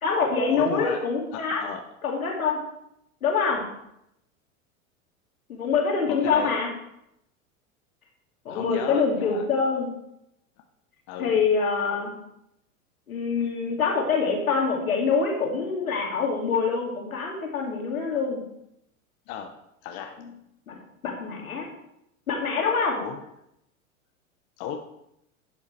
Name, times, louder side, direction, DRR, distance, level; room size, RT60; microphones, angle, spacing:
voice 1, 0.0-1.6 2.0-2.6 3.2-3.6 5.5-6.7 8.4-9.9 11.2-12.1 13.1-18.4 20.7-21.7 22.3-23.0, left 5 dB, 80° left, 0 dB, 2.5 m, -25 dB
voice 2, 0.5-1.0 1.3-1.8 6.1-6.5 8.5-9.4 11.1-11.4 19.3-19.5 19.8-20.2 23.0-23.2 24.6-24.8, left 8 dB, 45° left, 4 dB, 0.9 m, -34 dB
11.0 x 7.2 x 3.3 m, 0.80 s
figure-of-eight pair, 90°, 42 cm